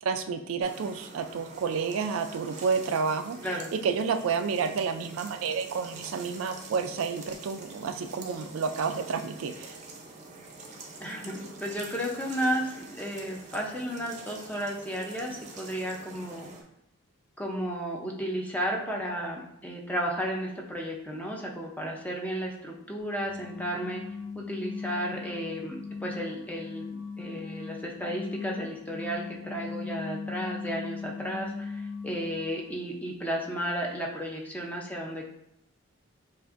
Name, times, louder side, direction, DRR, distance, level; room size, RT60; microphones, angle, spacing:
voice 1, 0.0-3.4 3.7-9.8, right 5 dB, 70° right, 9 dB, 0.3 m, -30 dB
sound 1, 0.6-16.6, right 3 dB, 35° right, 0.6 m, -46 dB
voice 2, 11.0-16.5 17.4-24.0 24.3-35.3, equal, 5° left, -1 dB, 0.5 m, -33 dB
sound 2, 23.0-32.7, left 5 dB, 60° left, 0.6 m, -39 dB
7.4 x 2.5 x 2.5 m, 0.83 s
head